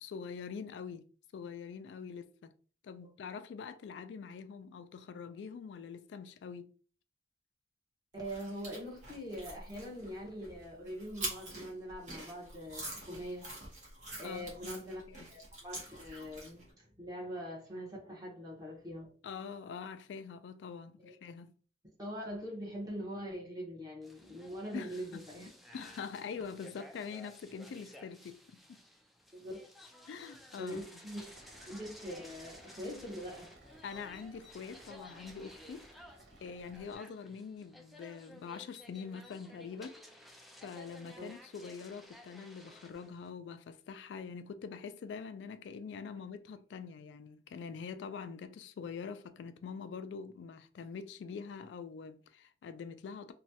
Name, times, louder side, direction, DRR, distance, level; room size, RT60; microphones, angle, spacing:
voice 1, 0.0-1.1 1.3-2.5 2.8-6.7 14.2-14.8 15.1-15.3 19.2-21.5 24.7-25.2 25.7-28.8 30.1-30.9 33.8-35.9 36.4-40.0 40.6-53.3, left 6 dB, 85° left, 0.3 m, -44 dB
voice 2, 8.1-13.5 14.2-15.0 15.3-19.1 21.0-21.1 22.0-25.5 29.3-29.6 30.6-31.3 31.6-33.5 41.2-41.3, equal, 20° right, 1.2 m, -43 dB
sound 1, 8.2-16.7, right 2 dB, 45° right, 1.2 m, -45 dB
sound 2, 24.0-43.3, left 1 dB, ahead, 0.4 m, -55 dB
sound 3, 31.2-36.9, right 1 dB, 75° right, 0.8 m, -59 dB
3.1 x 2.3 x 2.7 m
head